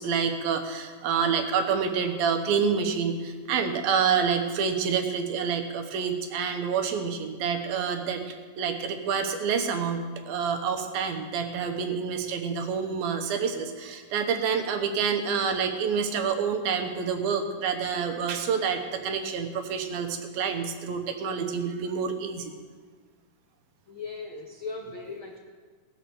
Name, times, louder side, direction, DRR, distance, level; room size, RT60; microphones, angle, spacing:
voice 1, 0.0-8.2 8.6-22.5, right 6 dB, 80° right, 5 dB, 2.9 m, -28 dB
voice 2, 23.9-25.4, left 4 dB, 65° left, 0 dB, 1.3 m, -38 dB
18.0 x 7.9 x 6.9 m, 1.5 s
omnidirectional pair, 4.2 m